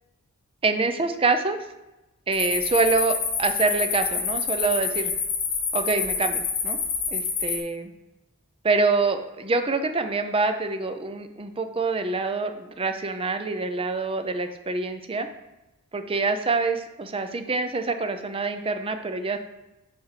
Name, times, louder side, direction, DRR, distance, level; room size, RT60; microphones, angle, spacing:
voice 1, 0.6-1.6 2.3-5.1 5.7-6.8 7.1-7.9 8.6-15.3 15.9-19.4, right 3 dB, 25° right, 7 dB, 0.5 m, -26 dB
sound 1, 2.3-7.6, left 5 dB, 85° left, 1.7 m, -27 dB
7.8 x 3.5 x 5.7 m, 0.99 s
head